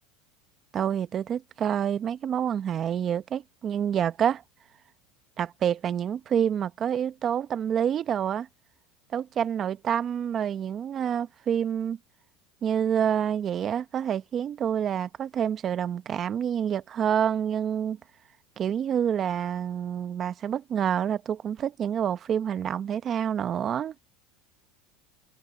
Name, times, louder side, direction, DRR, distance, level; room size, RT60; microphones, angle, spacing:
voice 1, 0.7-4.4 5.4-8.5 9.1-12.0 12.6-18.0 18.6-23.9, right 9 dB, 35° right, 1.0 m, -27 dB
open air
supercardioid pair, 130°, 0 cm